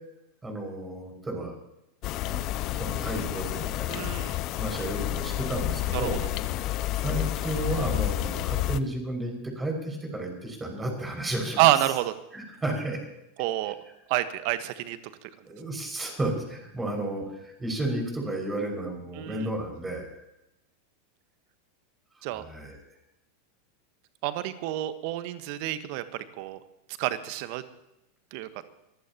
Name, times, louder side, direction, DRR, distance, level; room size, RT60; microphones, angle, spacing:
voice 1, 0.4-1.5 2.2-2.4 2.8-4.1 4.6-6.2 6.9-11.6 12.3-13.0 15.4-20.2 22.3-22.8, right 1 dB, 15° right, 2 dB, 6.0 m, -32 dB
sound 1, 2.0-8.8, left 14 dB, 45° left, 0.7 m, -30 dB
voice 2, 3.9-4.4 5.9-6.1 11.6-12.1 13.4-13.8 14.1-15.3 19.2-19.5 22.2-22.4 24.2-26.0 26.4-26.6 27.0-27.6 28.3-28.5, right 14 dB, 55° right, 12 dB, 1.3 m, -28 dB
24.5 x 15.5 x 3.0 m, 0.86 s
figure-of-eight pair, 90°, 0 cm